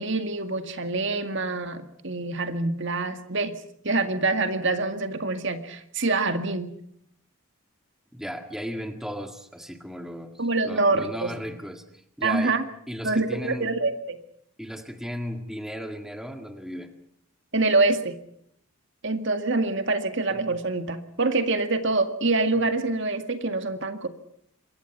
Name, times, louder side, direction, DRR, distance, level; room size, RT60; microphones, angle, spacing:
voice 1, 0.0-3.5 3.8-6.7 10.4-11.3 12.2-12.6 13.0-14.2 17.5-18.2 19.0-24.1, right 3 dB, 55° right, 8 dB, 2.0 m, -25 dB
voice 2, 8.1-12.6 12.9-13.7 14.6-16.9, equal, ahead, 6 dB, 1.8 m, -35 dB
26.5 x 23.0 x 5.9 m, 0.69 s
head